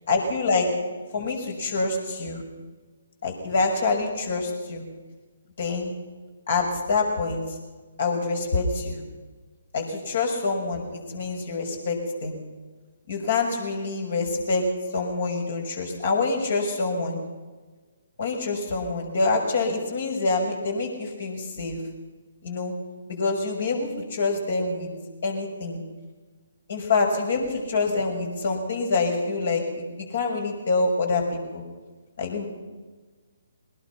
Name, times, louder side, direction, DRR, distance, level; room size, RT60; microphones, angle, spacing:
voice 1, 0.1-0.7 1.1-2.4 3.2-4.8 5.6-5.9 6.5-7.6 8.0-9.0 9.7-12.4 13.1-14.6 14.9-17.2 18.2-21.8 22.4-22.7 23.1-24.9 25.2-25.8 26.7-29.6 30.0-31.6 32.2-32.5, left 3 dB, 60° left, 2 dB, 6.4 m, -26 dB
22.5 x 19.5 x 5.9 m, 1.3 s
figure-of-eight pair, 140°, 0 cm